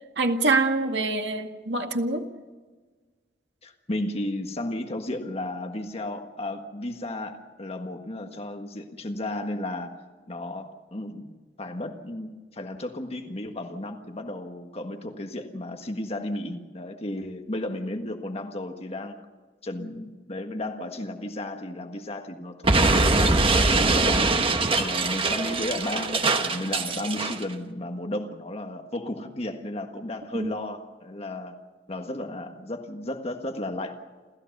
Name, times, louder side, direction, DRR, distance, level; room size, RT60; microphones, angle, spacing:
voice 1, 0.2-2.3 30.3-30.5, right 2 dB, 70° right, 4 dB, 2.1 m, -25 dB
voice 2, 3.6-10.0 10.3-11.3 11.6-19.2 19.6-24.4 24.7-31.5 31.9-34.0, left 1 dB, 35° left, 5 dB, 1.5 m, -34 dB
Explosion, 22.6-27.4, right 3 dB, 30° right, 1.4 m, -22 dB
28.5 x 15.0 x 6.7 m, 1.4 s
head